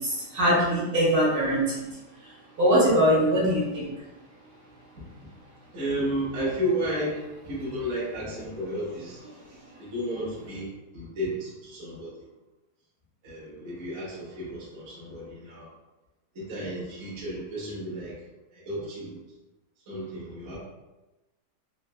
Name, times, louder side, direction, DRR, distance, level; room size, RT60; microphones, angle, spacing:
voice 1, 0.1-1.9 2.6-3.9, equal, 65° right, -8 dB, 1.6 m, -22 dB
voice 2, 5.7-12.1 13.2-15.7 16.3-18.2 18.5-19.2 19.9-20.6, equal, 45° right, -8 dB, 1.2 m, -33 dB
3.8 x 2.5 x 2.2 m, 1.1 s
omnidirectional pair, 1.9 m